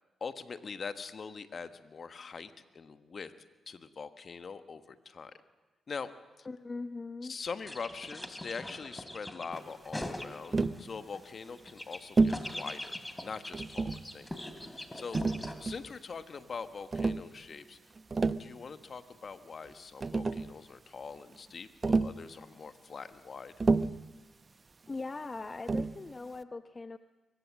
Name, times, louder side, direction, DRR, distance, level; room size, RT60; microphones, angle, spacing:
voice 1, 0.2-3.3 3.7-5.3 5.9-6.1 6.4-6.5 7.2-15.2 15.6-17.8 18.4-23.5, left 5 dB, 55° left, 10 dB, 1.3 m, -43 dB
voice 2, 6.5-7.3 24.9-27.0, left 3 dB, 35° left, 10 dB, 0.8 m, -40 dB
sound 1, 7.7-10.8 11.1-15.5, left 1 dB, 15° left, 3.0 m, -42 dB
Tap, 10.5-10.8 12.2-12.5 13.5-14.1 15.1-15.9 16.9-17.3 18.0-18.5 19.7-19.8 20.0-20.5 21.8-22.2 23.6-24.1 25.7-26.0, right 3 dB, 40° right, 0.7 m, -29 dB
23.0 x 19.5 x 7.5 m, 1.2 s
hypercardioid pair, 40°, 0 cm